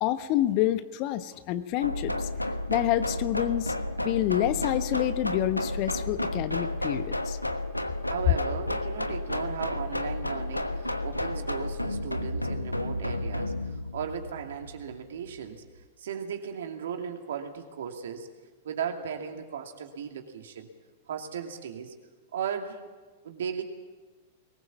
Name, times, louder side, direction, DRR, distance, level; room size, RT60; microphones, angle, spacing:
voice 1, 0.0-2.3 2.7-3.7 4.0-7.4, left 13 dB, 40° left, 12 dB, 1.1 m, -28 dB
sound 1, 1.8-15.5, left 1 dB, 90° left, 1.1 m, -32 dB
voice 2, 8.0-15.6 16.0-18.3 18.6-20.7 21.1-21.9 22.3-22.9 23.2-23.6, right 7 dB, 60° right, 4 dB, 2.5 m, -36 dB
22.5 x 19.5 x 7.2 m, 1.3 s
figure-of-eight pair, 95°, 0 cm